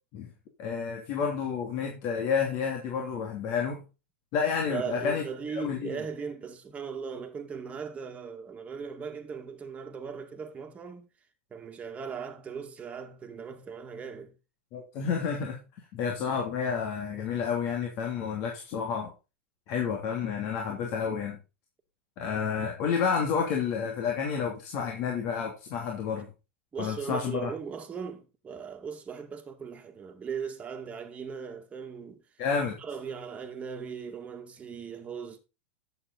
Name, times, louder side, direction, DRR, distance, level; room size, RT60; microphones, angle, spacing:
voice 1, 0.6-3.8 4.3-5.2 5.5-6.0 14.7-15.6 15.9-19.1 19.7-21.4 22.2-26.3 26.8-27.5 32.4-32.8, left 6 dB, 50° left, 3.1 m, -30 dB
voice 2, 4.7-11.1 11.5-14.3 26.7-32.2 32.8-35.4, right 6 dB, 20° right, 2.1 m, -38 dB
11.0 x 8.2 x 4.1 m
supercardioid pair, 125°, 7 cm